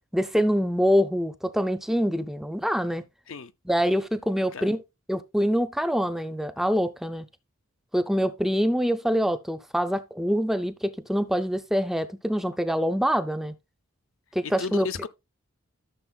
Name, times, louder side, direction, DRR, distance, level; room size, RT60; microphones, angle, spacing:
voice 1, 0.1-3.1 3.7-4.8 5.1-7.3 7.9-13.5 14.3-14.9, equal, ahead, 0.5 m, -25 dB
voice 2, 14.4-15.1, left 4 dB, 65° left, 0.7 m, -34 dB
13.5 x 6.6 x 2.3 m
head